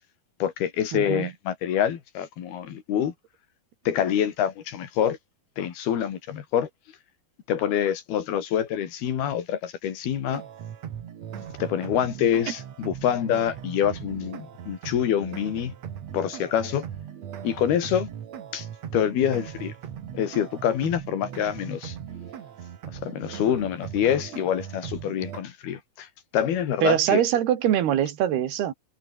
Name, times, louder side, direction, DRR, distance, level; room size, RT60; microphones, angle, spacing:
voice 1, 0.4-3.1 3.9-5.2 5.6-6.7 7.5-10.4 11.6-15.7 16.1-16.9 17.4-18.1 18.5-18.7 18.9-19.7 20.1-22.0 22.9-26.1 26.3-27.2, left 9 dB, 80° left, 4.4 m, -26 dB
voice 2, 0.9-1.3 12.5-12.6 26.8-28.7, right 11 dB, 90° right, 4.1 m, -23 dB
sound 1, 10.3-25.4, right 9 dB, 50° right, 2.6 m, -39 dB
omnidirectional pair, 4.4 m